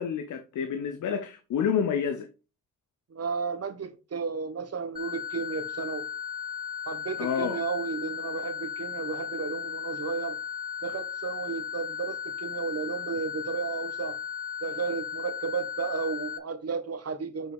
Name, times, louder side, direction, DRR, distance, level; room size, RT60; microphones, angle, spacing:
voice 1, 0.0-2.3 7.2-7.6, left 7 dB, 80° left, 0.9 m, -29 dB
voice 2, 3.1-6.1 6.9-10.4 10.8-14.2 14.6-17.5, right 5 dB, 55° right, 1.5 m, -33 dB
sound 1, 5.0-16.4, left 8 dB, 30° left, 2.3 m, -36 dB
7.5 x 4.8 x 5.2 m
cardioid pair, 55°, 30 cm